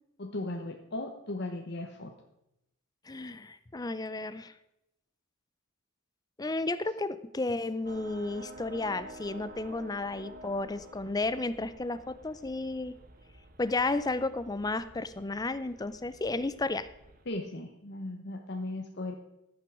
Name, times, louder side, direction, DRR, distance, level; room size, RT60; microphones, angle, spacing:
voice 1, 0.2-2.1 17.3-19.1, left 2 dB, 60° left, 2 dB, 1.0 m, -37 dB
voice 2, 3.1-4.5 6.4-13.0 13.6-16.9, left 2 dB, 20° left, 14 dB, 0.5 m, -33 dB
sound 1, 7.8-17.3, right 1 dB, 45° right, 1.1 m, -50 dB
13.5 x 6.1 x 6.2 m, 0.86 s
head